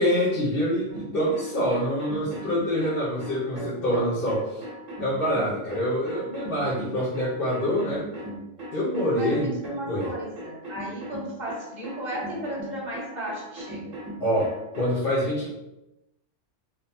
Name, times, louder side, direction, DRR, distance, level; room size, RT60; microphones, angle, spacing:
voice 1, 0.0-4.6 5.0-8.1 8.7-9.5 9.9-10.1 14.2-15.6, equal, 50° left, -9 dB, 1.0 m, -26 dB
sound 1, 0.9-15.0, right 1 dB, 80° right, 1.3 m, -38 dB
voice 2, 9.1-13.9, right 1 dB, 40° right, -5 dB, 1.2 m, -35 dB
3.6 x 2.8 x 2.6 m, 0.93 s
omnidirectional pair, 1.3 m